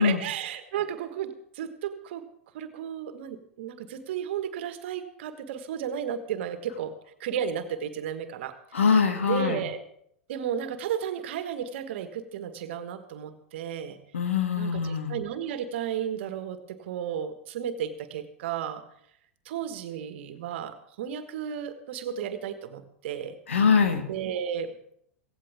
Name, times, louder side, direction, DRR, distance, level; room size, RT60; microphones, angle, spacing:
voice 1, 0.0-2.3 2.5-6.9 7.2-8.6 9.2-9.8 10.3-14.0 14.6-18.8 19.4-23.4 24.1-24.8, right 8 dB, 60° right, 10 dB, 1.6 m, -33 dB
voice 2, 8.7-9.6 14.1-15.1 23.5-24.0, left 6 dB, 75° left, 6 dB, 2.3 m, -23 dB
17.0 x 16.5 x 3.6 m, 0.70 s
figure-of-eight pair, 95°, 7 cm